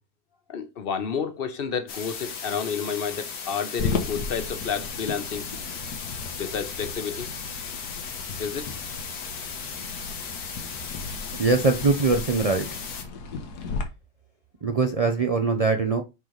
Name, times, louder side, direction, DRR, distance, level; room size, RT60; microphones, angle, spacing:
voice 1, 0.5-5.5 6.4-7.3 8.4-8.7, left 6 dB, 45° left, 0.8 m, -30 dB
sound 1, 1.9-13.0, left 6 dB, 75° left, 1.7 m, -36 dB
sound 2, 3.8-13.8, left 4 dB, 90° left, 1.7 m, -35 dB
voice 2, 11.4-12.7 14.6-16.0, right 4 dB, 65° right, 0.3 m, -22 dB
9.3 x 3.9 x 3.2 m
omnidirectional pair, 1.7 m